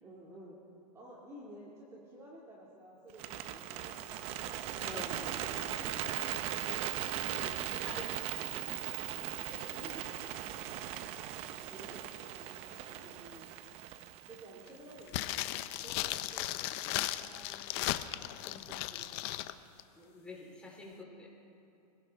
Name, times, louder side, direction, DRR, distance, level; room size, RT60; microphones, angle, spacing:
voice 1, 0.0-0.6 0.9-4.3 6.3-8.2 9.5-10.5 11.5-13.5 14.3-15.5 15.8-16.7 17.1-19.3, right 1 dB, 15° right, -4 dB, 2.1 m, -53 dB
Bird, 3.1-15.3, right 12 dB, 30° right, 0.6 m, -39 dB
voice 2, 4.8-6.5 6.9-7.0 7.5-8.2 8.5-8.8 20.0-21.3, left 2 dB, 5° left, -4 dB, 3.7 m, -48 dB
sound 1, 15.1-19.5 19.8-19.9, left 15 dB, 40° left, 0.6 m, -36 dB
25.0 x 16.5 x 3.5 m, 2.8 s
hypercardioid pair, 140°, 21 cm